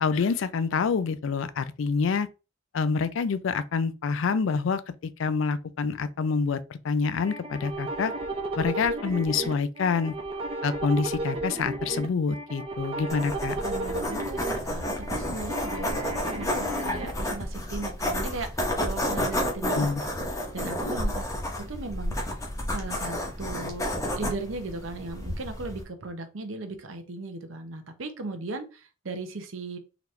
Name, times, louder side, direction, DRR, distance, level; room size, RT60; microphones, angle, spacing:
voice 1, 0.0-2.3 2.7-8.1 8.6-10.1 10.6-13.6 19.7-20.0, left 5 dB, 75° left, 0.4 m, -27 dB
sound 1, 7.2-17.1, right 1 dB, 30° right, 0.8 m, -33 dB
sound 2, 13.1-25.8, left 1 dB, 15° left, 0.9 m, -31 dB
voice 2, 13.6-21.4 21.7-22.4 22.7-23.9 24.2-29.8, right 3 dB, 80° right, 0.8 m, -37 dB
4.0 x 2.9 x 3.2 m
head